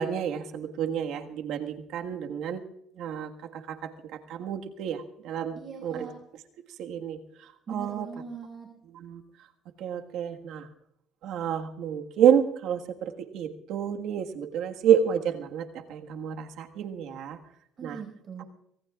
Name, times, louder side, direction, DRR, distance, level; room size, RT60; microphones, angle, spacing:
voice 1, 0.0-2.6 3.0-3.8 4.3-6.1 6.8-7.2 7.7-8.1 8.9-9.2 9.8-10.7 11.2-15.6 15.9-17.4 17.8-18.0, right 8 dB, 75° right, 4 dB, 1.6 m, -29 dB
voice 2, 5.6-6.1 7.7-8.7 17.8-18.4, right 6 dB, 45° right, 2 dB, 5.3 m, -40 dB
25.0 x 20.5 x 2.4 m, 0.75 s
cardioid pair, 105°, 0 cm